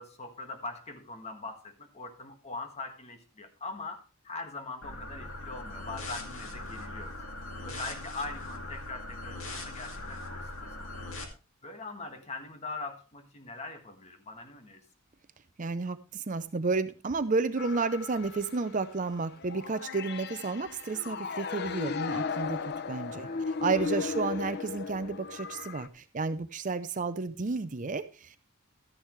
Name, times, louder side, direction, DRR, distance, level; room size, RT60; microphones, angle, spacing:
voice 1, 0.0-7.2 7.6-11.1 11.6-14.8 23.1-23.5 27.5-27.6, left 3 dB, 30° left, 1.6 m, -42 dB
sound 1, 4.8-11.2, left 2 dB, 70° left, 2.3 m, -40 dB
voice 2, 15.6-22.6 22.9-28.4, right 4 dB, 35° right, 0.6 m, -31 dB
sound 2, 17.6-25.9, left 5 dB, 50° left, 0.5 m, -36 dB
13.0 x 10.0 x 3.2 m
head